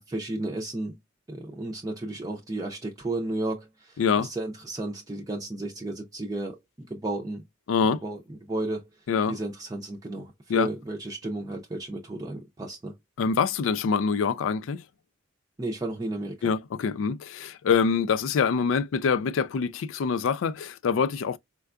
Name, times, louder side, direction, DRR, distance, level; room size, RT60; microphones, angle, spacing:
voice 1, 0.1-0.9 1.3-7.4 8.0-8.9 9.3-12.9 15.6-16.5, right 2 dB, 20° right, 0.5 m, -33 dB
voice 2, 4.0-4.3 7.7-8.0 9.1-9.4 10.5-10.7 13.2-14.8 16.4-21.4, left 6 dB, 75° left, 0.4 m, -25 dB
4.4 x 2.2 x 2.4 m
head